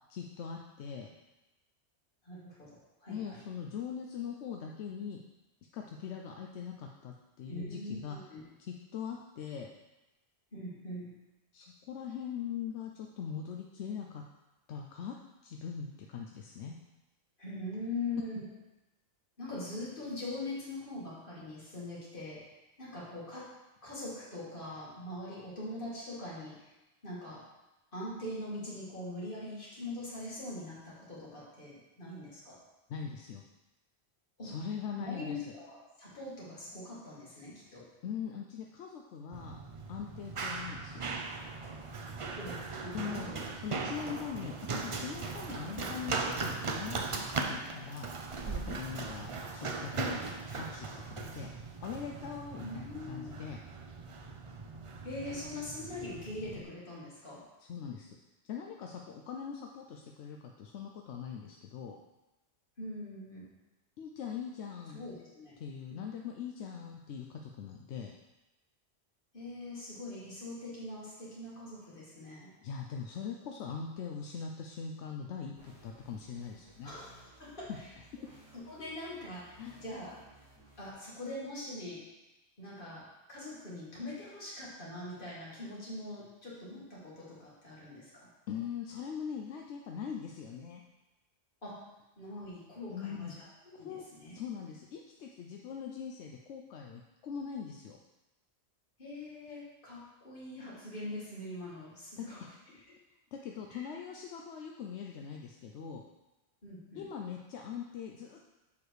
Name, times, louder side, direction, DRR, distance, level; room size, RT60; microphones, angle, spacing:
voice 1, 0.1-1.1 3.1-5.2 5.7-8.2 8.6-9.7 11.5-14.2 14.7-15.2 15.4-16.8 32.9-33.4 34.4-35.4 38.0-39.6 39.9-41.0 42.9-43.3 43.6-50.2 50.5-53.6 57.7-58.2 58.5-62.0 64.0-65.0 65.6-68.1 72.6-76.9 79.6-79.8 88.5-90.8 92.9-93.3 93.7-94.1 94.3-98.0 102.2-102.5 103.3-106.0 107.0-108.4, left 7 dB, 85° left, 1 dB, 0.9 m, -41 dB
voice 2, 2.2-3.4 7.5-8.4 10.5-11.1 17.4-18.5 19.4-23.5 23.8-26.7 27.0-27.4 27.9-32.6 34.4-34.5 34.9-37.8 42.4-42.6 42.8-43.4 45.7-46.0 48.6-48.7 52.6-53.3 55.0-57.4 62.8-63.5 64.9-65.5 65.9-66.0 69.3-72.5 76.8-77.9 78.5-80.2 80.8-82.0 82.6-83.0 83.3-88.1 91.6-91.8 92.2-94.4 99.0-102.8 103.7-103.9 106.6-107.1, left 1 dB, 50° left, -8 dB, 2.6 m, -42 dB
Run, 39.3-56.6, right 4 dB, 40° right, 0.5 m, -39 dB
sound 1, 75.6-80.9, right 2 dB, 15° right, 2.5 m, -59 dB
7.1 x 4.8 x 4.8 m, 1.0 s
omnidirectional pair, 1.1 m